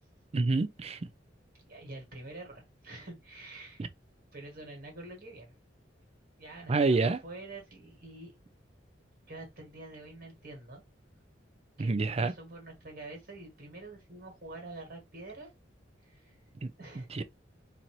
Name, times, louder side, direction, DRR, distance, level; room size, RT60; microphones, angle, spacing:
voice 1, 0.3-1.0 6.7-7.2 11.8-12.3 16.6-16.7 17.1-17.2, right 3 dB, 35° right, 0.4 m, -27 dB
voice 2, 1.5-3.9 4.3-5.5 6.4-8.4 9.3-10.8 11.8-15.5 16.0-16.3 16.8-17.1, right 2 dB, 55° right, 1.6 m, -46 dB
4.2 x 2.7 x 2.9 m
head